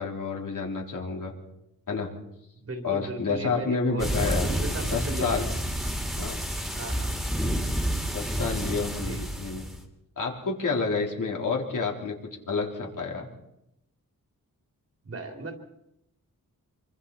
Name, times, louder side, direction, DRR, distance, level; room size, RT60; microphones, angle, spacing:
voice 1, 0.0-1.3 1.9-2.1 2.8-4.5 4.8-5.4 6.2-6.4 8.1-9.6 10.2-12.2 12.5-13.3, left 4 dB, 65° left, 0 dB, 4.0 m, -29 dB
voice 2, 2.6-5.5 6.7-7.1 9.0-9.2 15.0-15.5, right 2 dB, 40° right, 3 dB, 3.3 m, -36 dB
sound 1, 4.0-9.8, equal, ahead, 2.9 m, -29 dB
26.5 x 24.5 x 4.3 m, 0.83 s
wide cardioid pair, 145°, 34 cm